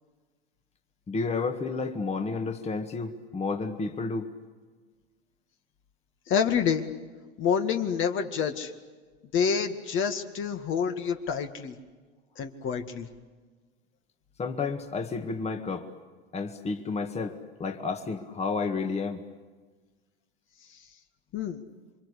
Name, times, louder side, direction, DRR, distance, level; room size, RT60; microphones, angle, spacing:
voice 1, 1.1-4.3 14.4-15.9 16.3-19.2, left 4 dB, 20° left, 5 dB, 2.0 m, -31 dB
voice 2, 6.3-6.8 7.4-8.7 9.3-11.8 12.4-13.1 21.3-21.6, left 7 dB, 40° left, 6 dB, 2.1 m, -27 dB
28.0 x 24.5 x 8.5 m, 1.4 s
hypercardioid pair, 100°, 30 cm